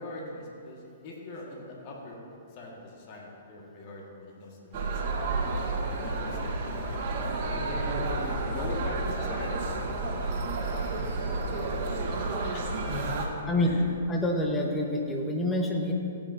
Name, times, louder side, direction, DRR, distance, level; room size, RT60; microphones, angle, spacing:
voice 1, 0.0-2.2 2.6-5.0 6.0-6.4 6.6-6.8 7.5-9.7 10.6-13.3 13.6-13.8, left 2 dB, 45° left, -2 dB, 2.0 m, -41 dB
sound 1, 4.7-13.3, right 3 dB, 45° right, 1.6 m, -31 dB
voice 2, 13.5-13.8 14.1-15.9, left 1 dB, 15° left, 1 dB, 1.4 m, -27 dB
15.5 x 8.5 x 2.9 m, 2.6 s
hypercardioid pair, 125°, 0 cm